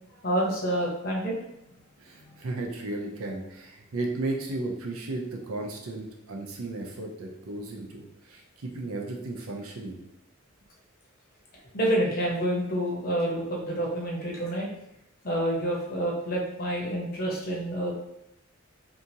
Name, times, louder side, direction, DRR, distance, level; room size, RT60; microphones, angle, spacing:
voice 1, 0.2-1.3 11.7-14.7 15.2-17.9, right 1 dB, 45° left, -3 dB, 0.8 m, -28 dB
voice 2, 2.0-10.0, right 2 dB, 90° right, 1 dB, 0.6 m, -34 dB
2.8 x 2.5 x 2.7 m, 0.81 s
head